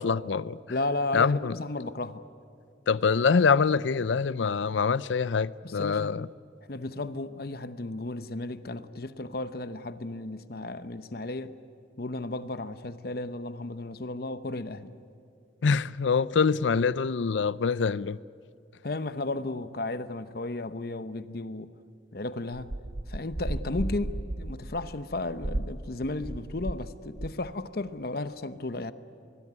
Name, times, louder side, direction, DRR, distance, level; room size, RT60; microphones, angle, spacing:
voice 1, 0.0-0.6 1.1-1.6 2.9-6.3 15.6-18.2, left 5 dB, 85° left, 0.5 m, -25 dB
voice 2, 0.7-2.2 5.6-6.1 6.7-11.5 12.0-14.9 18.8-21.7 22.1-22.7 23.1-28.9, left 2 dB, 55° left, 0.9 m, -34 dB
sound 1, 22.5-26.9 27.1-27.5, right 1 dB, 35° right, 0.6 m, -35 dB
25.0 x 21.0 x 9.6 m
head